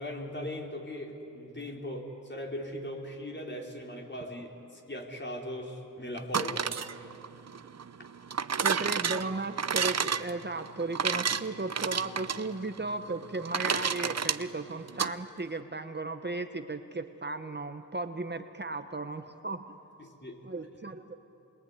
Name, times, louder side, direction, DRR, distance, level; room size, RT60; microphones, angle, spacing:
voice 1, 0.0-6.7 20.0-20.4, left 1 dB, 35° left, 1 dB, 4.2 m, -39 dB
sound 1, 6.2-15.1, right 6 dB, 55° right, 0.9 m, -31 dB
voice 2, 8.6-19.6 20.4-21.2, right 2 dB, 35° right, 8 dB, 1.3 m, -35 dB
27.5 x 22.0 x 9.7 m, 2.8 s
cardioid pair, 55°, 32 cm